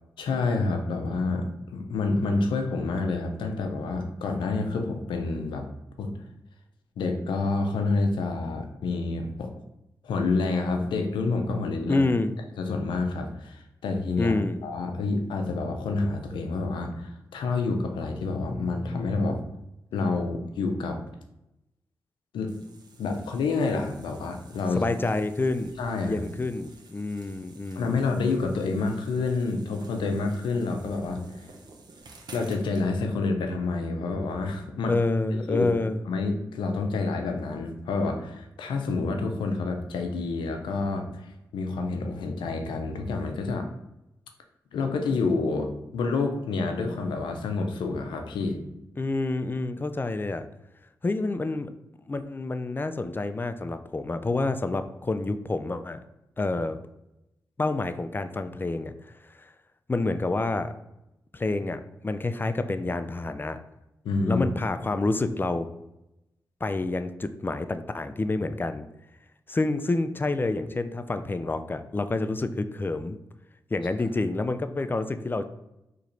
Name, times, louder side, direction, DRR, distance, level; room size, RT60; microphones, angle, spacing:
voice 1, 0.2-1.5 1.7-5.6 6.0-6.1 7.0-9.5 10.0-12.0 12.6-19.4 19.9-21.0 22.3-22.5 23.0-24.8 25.8-26.2 27.8-31.2 32.3-34.9 35.3-35.7 36.1-43.7 44.7-48.6 64.0-64.4, left 3 dB, 90° left, 5 dB, 0.5 m, -28 dB
voice 2, 11.9-12.3 14.2-14.6 24.7-25.7 26.0-28.0 34.9-36.0 49.0-50.5 51.0-51.7 52.1-56.0 56.4-56.8 57.6-58.9 59.9-60.7 61.3-63.6 64.3-65.7 66.6-68.9 69.5-73.2 73.7-75.4, left 2 dB, 25° left, 10 dB, 0.3 m, -28 dB
sound 1, 22.5-32.9, right 3 dB, 60° right, 0.7 m, -51 dB
3.0 x 2.5 x 4.3 m, 0.91 s
cardioid pair, 45°, 8 cm